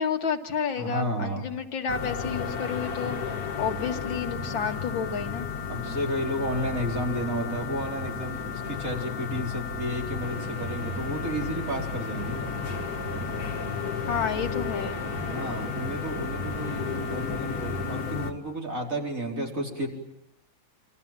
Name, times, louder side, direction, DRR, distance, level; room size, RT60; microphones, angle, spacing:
voice 1, 0.0-5.5 14.1-15.1, left 6 dB, 85° left, 5 dB, 2.7 m, -30 dB
voice 2, 0.8-1.5 5.7-12.5 15.3-19.9, equal, 45° right, 0 dB, 5.2 m, -32 dB
sound 1, 1.9-18.3, left 5 dB, 50° left, 2.4 m, -33 dB
sound 2, 10.2-18.1, right 6 dB, 90° right, 2.5 m, -42 dB
27.5 x 26.5 x 7.7 m, 0.84 s
omnidirectional pair, 2.1 m